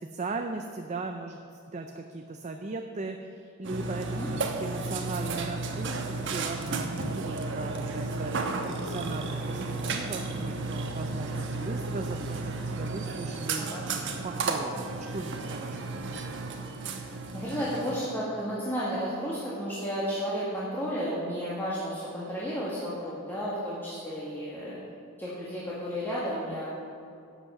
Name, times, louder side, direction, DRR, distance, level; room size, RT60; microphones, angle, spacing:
voice 1, 0.0-1.4 1.7-9.6 9.8-16.1, right 3 dB, 35° right, 4 dB, 0.6 m, -38 dB
Burping eructation, 3.6-18.1, right 3 dB, 65° right, 1.1 m, -33 dB
voice 2, 13.6-13.9 17.3-24.8 25.2-26.7, equal, 10° left, -9 dB, 2.0 m, -32 dB
12.0 x 8.1 x 5.9 m, 2.6 s
head